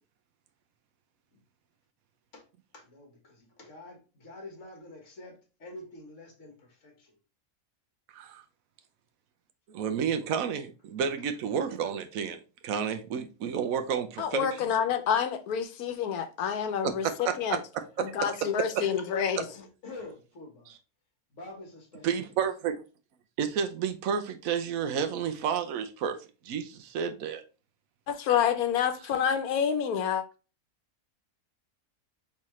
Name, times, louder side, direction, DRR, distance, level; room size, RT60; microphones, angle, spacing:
voice 1, 2.7-7.2 19.1-20.7 21.3-22.4, left 2 dB, 55° left, 1.7 m, -47 dB
voice 2, 9.7-14.5 16.8-17.6 18.0-18.1 18.7-18.9 22.0-22.8 23.4-26.2 26.4-27.4, right 7 dB, 75° right, 1.1 m, -31 dB
voice 3, 14.2-17.6 18.0-19.4 28.1-30.2, left 8 dB, 90° left, 1.2 m, -28 dB
4.2 x 3.9 x 3.1 m
omnidirectional pair, 1.5 m